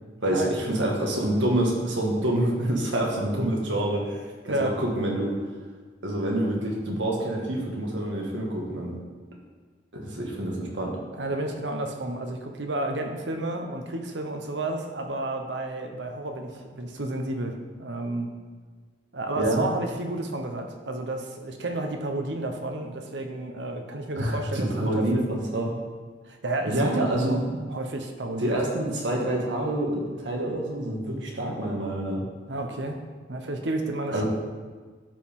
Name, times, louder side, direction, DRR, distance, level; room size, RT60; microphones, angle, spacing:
voice 1, 0.2-5.3 6.0-9.0 9.9-11.0 19.4-19.6 24.2-25.7 26.6-27.4 28.4-32.2 34.1-34.2, right 1 dB, 90° right, -1 dB, 1.7 m, -27 dB
voice 2, 11.1-18.3 19.1-25.4 26.2-27.4 27.7-28.5 32.5-33.0 33.3-34.2, right 2 dB, 70° right, 4 dB, 1.0 m, -31 dB
12.0 x 4.6 x 3.7 m, 1.4 s
head